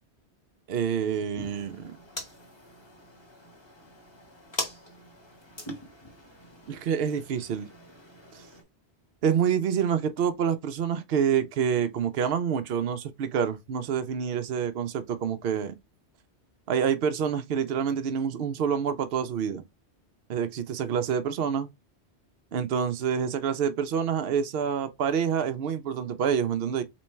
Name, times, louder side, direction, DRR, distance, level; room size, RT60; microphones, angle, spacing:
voice 1, 0.7-2.0 6.7-7.7 9.2-15.8 16.7-19.6 20.3-21.7 22.5-26.8, right 7 dB, 65° right, 0.8 m, -27 dB
sound 1, 1.3-8.6, left 1 dB, 25° left, 1.2 m, -42 dB
4.1 x 3.1 x 3.3 m
omnidirectional pair, 1.1 m